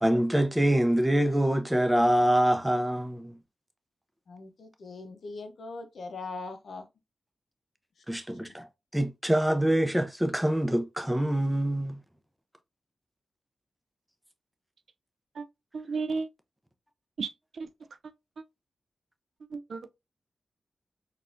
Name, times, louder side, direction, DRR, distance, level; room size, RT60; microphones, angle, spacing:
voice 1, 0.0-3.3 8.1-8.7 8.9-12.0, right 1 dB, 10° right, 0.7 m, -25 dB
voice 2, 4.3-6.8 8.5-8.6, left 3 dB, 75° left, 0.6 m, -41 dB
voice 3, 15.7-16.3 17.2-17.7 18.4-18.5 19.5-19.9, right 4 dB, 75° right, 0.3 m, -34 dB
4.0 x 2.4 x 2.5 m
cardioid pair, 55°, 0 cm